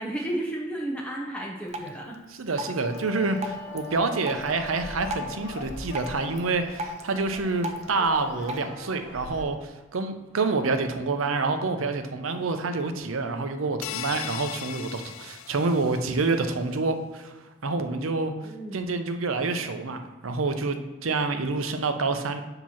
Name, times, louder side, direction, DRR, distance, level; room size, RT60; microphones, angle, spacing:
voice 1, 0.0-2.2 18.4-18.8, right 1 dB, 5° left, -3 dB, 0.7 m, -32 dB
Drip, 1.7-8.7, right 1 dB, 35° right, 0.5 m, -39 dB
voice 2, 2.4-18.3 18.7-22.4, right 3 dB, 80° right, 7 dB, 0.7 m, -27 dB
sound 1, 2.8-9.4, left 3 dB, 60° left, 0.8 m, -40 dB
sound 2, 13.8-16.3, left 10 dB, 80° left, 0.3 m, -37 dB
7.3 x 2.9 x 5.7 m, 1.2 s
head